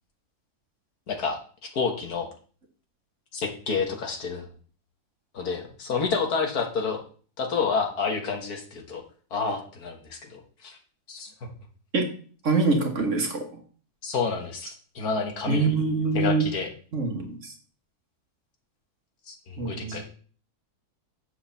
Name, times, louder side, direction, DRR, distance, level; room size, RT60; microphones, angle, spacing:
voice 1, 1.1-2.3 3.3-4.5 5.3-7.0 7.4-9.0 9.3-10.8 11.1-11.5 14.0-15.7 16.1-16.7 19.3-20.0, left 5 dB, 75° left, 3 dB, 2.0 m, -29 dB
voice 2, 12.4-13.4 15.5-16.4 16.9-17.5 19.6-20.0, right 3 dB, 55° right, 3 dB, 1.7 m, -24 dB
6.9 x 4.8 x 6.9 m, 0.42 s
omnidirectional pair, 1.6 m